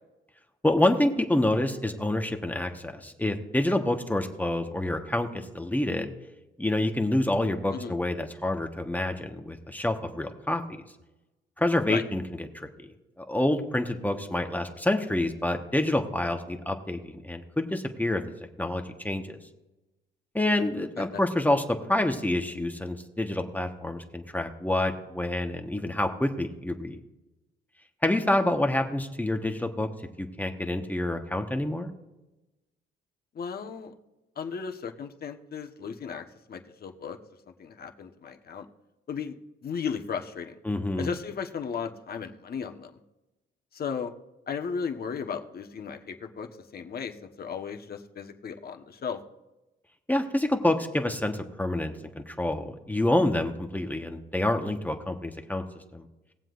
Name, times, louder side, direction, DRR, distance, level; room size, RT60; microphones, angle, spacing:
voice 1, 0.6-6.1 6.6-10.6 11.6-12.2 12.5-12.7 13.2-18.2 18.6-19.4 20.3-27.0 28.0-29.9 30.2-31.9 40.6-41.1 50.1-55.6 55.9-56.1, left 1 dB, 10° left, 4 dB, 1.2 m, -27 dB
voice 2, 33.3-33.9 34.4-37.2 37.6-38.7 39.1-39.4 39.6-40.6 41.0-43.0 43.7-44.1 44.5-49.2, left 6 dB, 50° left, 5 dB, 1.2 m, -35 dB
20.0 x 7.5 x 2.5 m, 1.0 s
cardioid pair, 90°, 20 cm